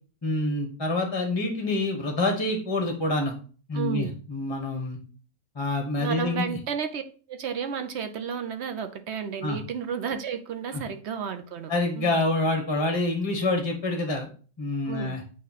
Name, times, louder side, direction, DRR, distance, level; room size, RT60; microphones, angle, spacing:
voice 1, 0.2-3.3 3.7-5.0 5.5-6.6 9.4-9.6 10.7-10.8 11.7-14.3 14.6-15.2, left 2 dB, 20° left, 0.9 m, -27 dB
voice 2, 3.7-4.1 6.0-7.0 7.3-12.1 14.8-15.2, right 7 dB, 60° right, 0.8 m, -32 dB
8.5 x 3.1 x 4.1 m
omnidirectional pair, 1.5 m